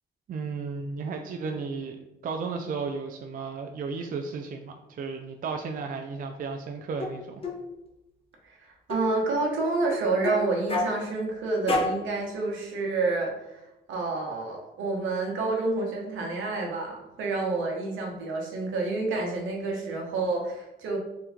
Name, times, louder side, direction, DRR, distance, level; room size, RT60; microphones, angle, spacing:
voice 1, 0.3-7.4, right 4 dB, 45° right, 4 dB, 0.4 m, -34 dB
sound 1, 7.0-7.1 7.4-7.6 8.9-9.1 9.8-10.4 10.7-10.9 11.7-12.0, left 3 dB, 30° left, 0.7 m, -28 dB
voice 2, 8.4-13.6 13.9-21.0, right 3 dB, 80° right, 0 dB, 1.0 m, -29 dB
3.5 x 3.0 x 3.5 m, 0.94 s
cardioid pair, 90°, 20 cm